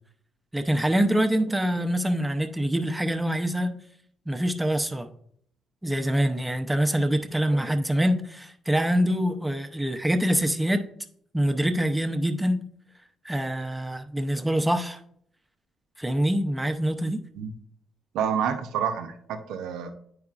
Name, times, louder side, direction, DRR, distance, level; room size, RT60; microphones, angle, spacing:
voice 1, 0.5-3.8 4.3-5.1 5.8-10.9 11.3-12.7 13.2-15.0 16.0-17.2, equal, 10° right, 6 dB, 0.6 m, -25 dB
voice 2, 18.1-19.9, right 8 dB, 85° right, 6 dB, 0.6 m, -28 dB
9.2 x 4.8 x 2.4 m, 0.67 s
cardioid pair, 90°, 0 cm